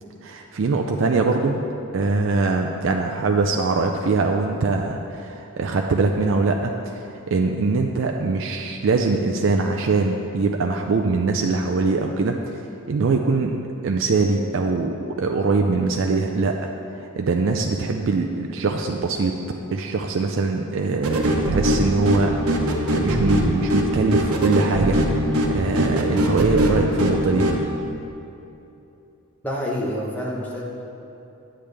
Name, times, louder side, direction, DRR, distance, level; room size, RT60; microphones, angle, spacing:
voice 1, 0.2-1.6 1.9-12.5 12.9-19.4 19.7-27.5, right 3 dB, 55° right, 2 dB, 0.4 m, -23 dB
sound 1, 21.0-27.6, equal, 80° right, 1.0 m, -22 dB
voice 2, 29.4-30.6, equal, 10° left, -4 dB, 1.0 m, -27 dB
8.7 x 8.6 x 3.3 m, 2.8 s
head